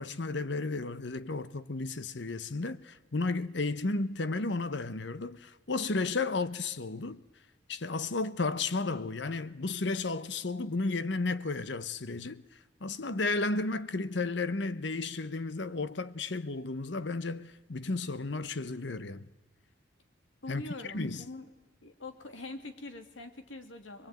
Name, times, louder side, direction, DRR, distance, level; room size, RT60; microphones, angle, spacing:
voice 1, 0.0-7.2 7.7-12.4 12.8-19.3 20.5-20.6 20.9-21.2, left 3 dB, 65° left, 0.9 m, -33 dB
voice 2, 20.4-21.5 21.8-24.1, left 2 dB, 80° left, 2.7 m, -43 dB
23.0 x 23.0 x 9.1 m
head